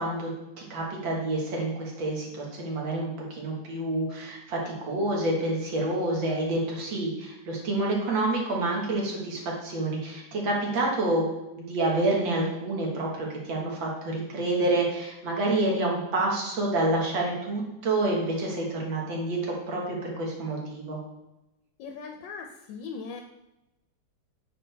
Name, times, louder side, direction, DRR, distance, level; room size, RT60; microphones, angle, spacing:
voice 1, 0.0-11.3 11.6-21.0, right 2 dB, 70° right, -2 dB, 2.3 m, -28 dB
voice 2, 21.8-23.2, left 5 dB, 75° left, 3 dB, 1.3 m, -39 dB
8.5 x 4.6 x 3.4 m, 0.94 s
omnidirectional pair, 2.2 m